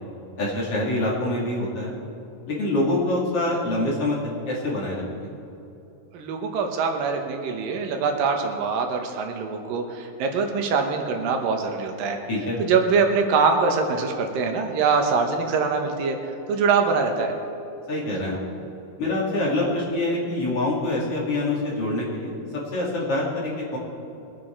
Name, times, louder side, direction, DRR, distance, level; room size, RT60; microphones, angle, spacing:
voice 1, 0.4-2.0 2.5-4.2 4.5-5.3 12.3-12.6 17.9-18.4 19.0-22.3 22.7-23.8, left 2 dB, 45° left, -4 dB, 3.1 m, -25 dB
voice 2, 6.1-12.2 12.6-17.3, right 5 dB, 90° right, 4 dB, 2.9 m, -23 dB
22.0 x 9.3 x 4.5 m, 2.9 s
omnidirectional pair, 3.9 m